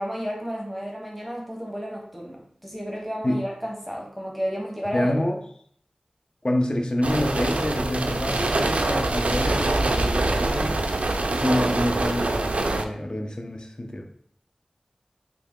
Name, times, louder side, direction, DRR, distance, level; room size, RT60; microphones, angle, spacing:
voice 1, 0.0-5.2, equal, ahead, -2 dB, 0.9 m, -32 dB
voice 2, 4.9-5.4 6.4-10.8 11.3-14.1, left 1 dB, 40° left, 4 dB, 0.5 m, -27 dB
sound 1, 7.0-12.8, right 2 dB, 80° right, 0.3 m, -24 dB
3.3 x 2.9 x 3.6 m, 0.62 s
wide cardioid pair, 55°, 2 cm